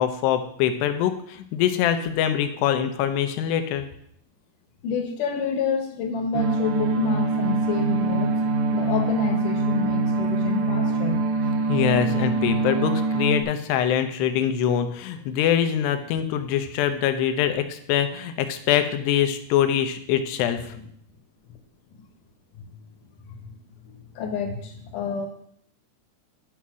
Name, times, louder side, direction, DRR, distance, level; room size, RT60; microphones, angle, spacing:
voice 1, 0.0-3.9 11.7-20.7, left 9 dB, 85° left, 8 dB, 3.0 m, -24 dB
voice 2, 4.8-8.3 8.7-11.2 20.7-20.9 21.9-22.1 22.6-22.7 23.3-23.5 24.1-25.3, left 6 dB, 65° left, 4 dB, 2.5 m, -29 dB
sound 1, 6.3-13.4, right 3 dB, 85° right, 3.0 m, -24 dB
11.0 x 5.7 x 6.2 m, 0.69 s
omnidirectional pair, 4.8 m